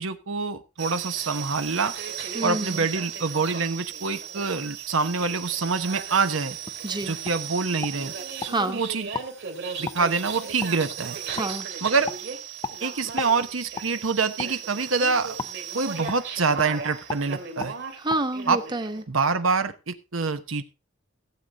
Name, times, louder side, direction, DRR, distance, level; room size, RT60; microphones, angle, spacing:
voice 1, 0.0-1.9 2.4-6.6 7.0-8.1 8.7-9.1 9.8-11.2 11.8-12.1 12.8-15.4 15.7-17.7 18.5-18.6 19.1-20.6, right 4 dB, 90° right, 9 dB, 1.1 m, -26 dB
sound 1, 0.8-19.0, right 7 dB, 60° right, 3.0 m, -36 dB
voice 2, 2.3-2.8 6.8-7.2 8.5-8.8 11.3-11.7 18.0-19.0, right 2 dB, 20° right, 7 dB, 1.1 m, -28 dB
sound 2, 6.7-6.8 7.2-7.4 7.8-8.5 9.1-9.3 9.9-10.0 10.6-10.7 11.4-11.5 12.0-12.2 12.6-12.8 13.2-13.3 13.7-13.9 14.4-14.6 15.4-15.5 16.1-16.2 16.5-16.7 17.1-17.3 17.6-17.7 18.1-18.2, left 4 dB, 20° left, 0.7 m, -34 dB
16.0 x 8.0 x 4.0 m, 0.28 s
head